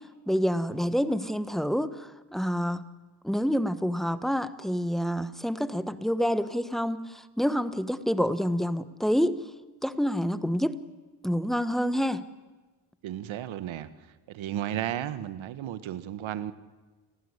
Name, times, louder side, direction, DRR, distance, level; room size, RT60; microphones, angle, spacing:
voice 1, 0.3-2.8 3.2-9.4 9.8-10.8 11.2-12.2, equal, ahead, 12 dB, 1.3 m, -27 dB
voice 2, 13.0-13.9 14.3-16.5, right 11 dB, 75° right, 12 dB, 1.7 m, -33 dB
29.5 x 17.5 x 9.9 m, 1.3 s
cardioid pair, 100°, 47 cm